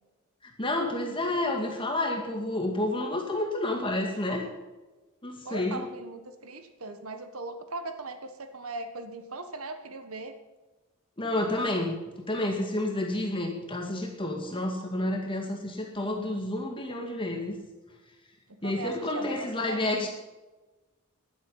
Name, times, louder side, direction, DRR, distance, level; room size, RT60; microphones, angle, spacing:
voice 1, 0.4-4.5 5.2-5.8 11.2-12.0 12.3-17.6 18.6-20.1, left 1 dB, 25° left, 1 dB, 2.1 m, -30 dB
voice 2, 5.4-10.3 18.6-20.1, right 2 dB, 80° right, 8 dB, 1.4 m, -39 dB
15.5 x 12.0 x 5.7 m, 1.2 s
head